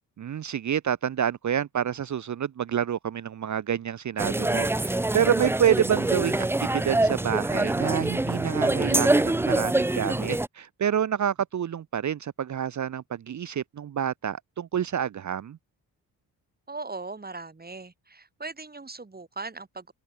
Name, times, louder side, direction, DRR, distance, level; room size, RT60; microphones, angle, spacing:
voice 1, 0.2-15.6, right 9 dB, 45° right, 0.7 m, -28 dB
sound 1, 4.2-10.5, right 2 dB, 5° right, 0.5 m, -25 dB
voice 2, 16.7-19.9, right 3 dB, 20° right, 2.2 m, -39 dB
supercardioid pair, 45°, 42 cm